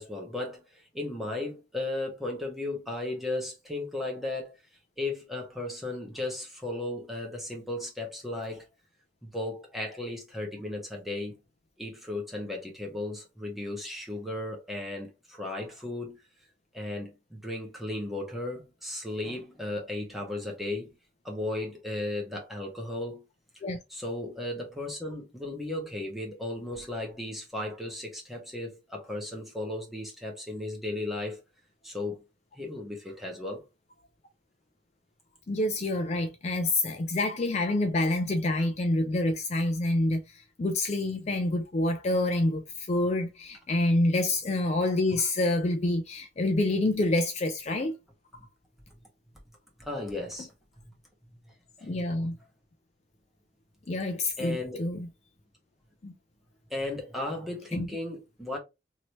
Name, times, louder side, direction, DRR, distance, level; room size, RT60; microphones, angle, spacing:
voice 1, 0.0-4.6 5.0-8.6 9.2-11.4 11.8-16.2 16.7-20.9 21.2-23.2 23.9-31.4 31.8-32.2 32.5-33.6 49.8-50.5 51.8-51.9 54.4-54.9 56.7-58.6, left 2 dB, ahead, 1.1 m, -35 dB
voice 2, 35.5-47.9 50.4-50.5 51.8-52.4 53.9-55.1 56.0-56.1 57.7-57.9, left 2 dB, 35° left, 0.4 m, -27 dB
3.0 x 2.8 x 3.0 m
head